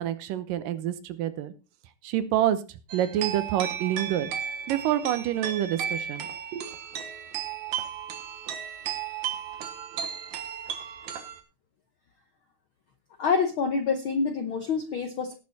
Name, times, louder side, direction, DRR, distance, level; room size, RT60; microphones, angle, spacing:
voice 1, 0.0-1.5 2.0-2.6 2.9-4.3 4.7-6.3 6.5-6.7, right 11 dB, 90° right, 12 dB, 2.7 m, -27 dB
sound 1, 2.9-11.4, right 8 dB, 65° right, 2.6 m, -34 dB
voice 2, 13.2-15.4, left 5 dB, 75° left, 6 dB, 1.2 m, -26 dB
18.0 x 6.5 x 4.1 m, 0.31 s
omnidirectional pair, 3.8 m